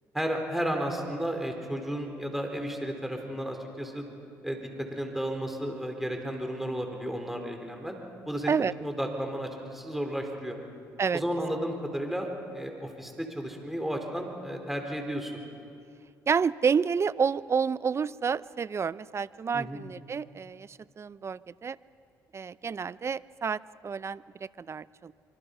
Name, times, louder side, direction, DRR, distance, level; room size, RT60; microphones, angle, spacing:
voice 1, 0.1-4.1 4.4-8.0 8.2-10.6 11.1-15.3 19.5-19.8, equal, 5° right, 3 dB, 4.4 m, -33 dB
voice 2, 16.3-21.8 22.3-25.1, right 6 dB, 35° right, 18 dB, 0.5 m, -29 dB
26.0 x 24.5 x 5.6 m, 2.5 s
supercardioid pair, 70°, 8 cm